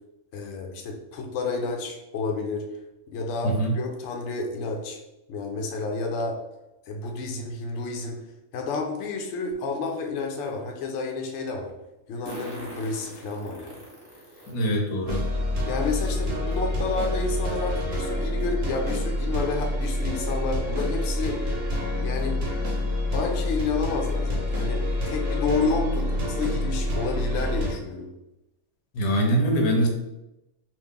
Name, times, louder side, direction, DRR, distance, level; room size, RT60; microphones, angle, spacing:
voice 1, 0.3-2.7 3.1-5.0 5.3-6.4 6.9-8.2 8.5-11.7 12.1-13.8 15.7-21.4 22.0-22.4 23.1-28.1, left 4 dB, 65° left, 2 dB, 0.8 m, -30 dB
voice 2, 3.4-3.8 14.5-15.2 28.9-29.9, right 1 dB, 85° left, 1 dB, 1.2 m, -23 dB
Fart, 9.5-9.6 12.3-14.5 15.2-15.3 16.6-16.7 17.0-17.1 17.6-17.8, right 1 dB, 10° right, 1.2 m, -41 dB
sound 1, 15.1-27.7, left 1 dB, 50° right, 1.0 m, -27 dB
3.0 x 2.4 x 3.6 m, 0.92 s
omnidirectional pair, 1.5 m